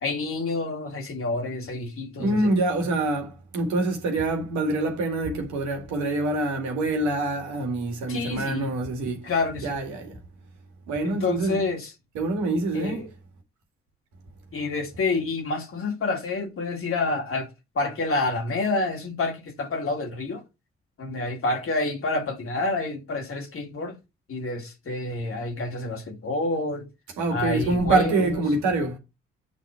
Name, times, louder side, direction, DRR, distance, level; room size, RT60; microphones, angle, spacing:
voice 1, 0.0-2.5 8.1-8.7 9.2-9.8 11.0-11.9 12.7-13.1 14.5-17.5 17.7-20.4 21.0-24.0 24.3-26.9 27.3-28.4, left 3 dB, 45° left, 2.4 m, -28 dB
voice 2, 2.2-9.3 9.6-10.2 10.9-11.6 12.1-13.0 27.2-29.0, right 2 dB, 65° right, 2.0 m, -25 dB
9.0 x 4.1 x 4.5 m
figure-of-eight pair, 40°, 31 cm